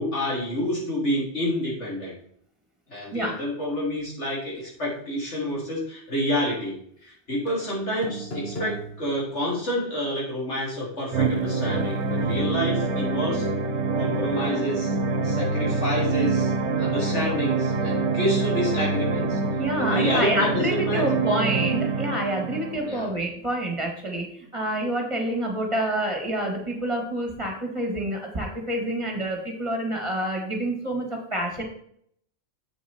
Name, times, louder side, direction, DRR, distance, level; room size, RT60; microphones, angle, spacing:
voice 1, 0.0-2.2 2.9-13.5 14.0-15.0 15.2-16.5 16.8-19.4 19.8-21.1 22.9-23.1, equal, 75° left, -4 dB, 3.8 m, -28 dB
sound 1, 7.5-7.6 8.0-9.6, right 1 dB, 60° left, 1.6 m, -36 dB
sound 2, 11.1-23.1, right 3 dB, 75° right, 1.1 m, -25 dB
voice 2, 19.6-31.6, right 1 dB, 25° right, 1 dB, 2.0 m, -27 dB
7.8 x 7.3 x 4.4 m, 0.66 s
omnidirectional pair, 1.2 m